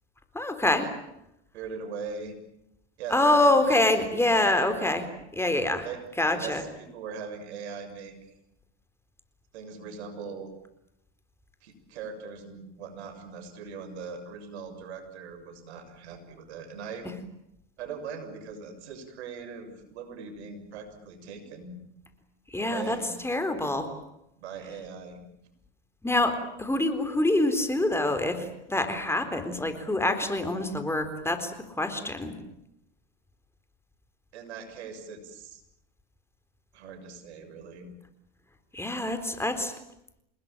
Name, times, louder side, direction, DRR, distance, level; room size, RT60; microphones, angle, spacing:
voice 1, 0.3-0.9 3.1-5.9 6.2-6.6 22.5-23.0 23.2-23.9 26.0-32.4 38.7-39.7, left 2 dB, 5° left, 8 dB, 4.0 m, -26 dB
voice 2, 1.5-2.4 3.0-3.8 4.1-4.5 5.8-6.0 6.3-8.3 9.5-10.5 11.6-17.1 17.8-21.8 22.6-23.1 24.4-25.2 34.3-35.6 36.7-37.9, right 5 dB, 75° right, 7 dB, 7.0 m, -40 dB
28.0 x 20.5 x 9.1 m, 0.81 s
hypercardioid pair, 90°, 33 cm